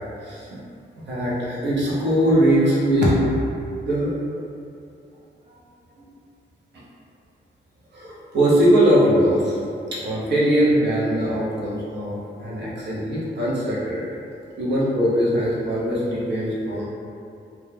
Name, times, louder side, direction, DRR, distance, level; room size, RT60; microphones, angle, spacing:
voice 1, 0.2-0.6 1.1-3.3 3.8-4.1 6.0-6.1 7.9-9.6 9.9-14.0 14.6-16.8, equal, 65° right, -7 dB, 0.6 m, -21 dB
2.2 x 2.0 x 3.1 m, 2.6 s
wide cardioid pair, 145°, 20 cm